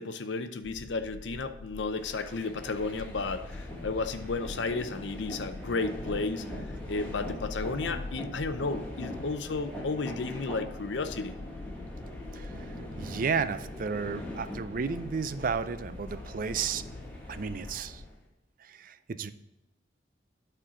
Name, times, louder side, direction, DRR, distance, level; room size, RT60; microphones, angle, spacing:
voice 1, 0.0-11.4, left 3 dB, 80° left, 10 dB, 0.6 m, -33 dB
sound 1, 0.6-18.1, left 2 dB, 30° left, 0.4 m, -44 dB
sound 2, 1.9-18.2, equal, 10° left, 1.8 m, -42 dB
voice 2, 13.0-16.9 17.3-18.0 18.6-19.3, right 5 dB, 50° right, 13 dB, 0.4 m, -32 dB
9.8 x 4.4 x 5.0 m, 0.96 s
head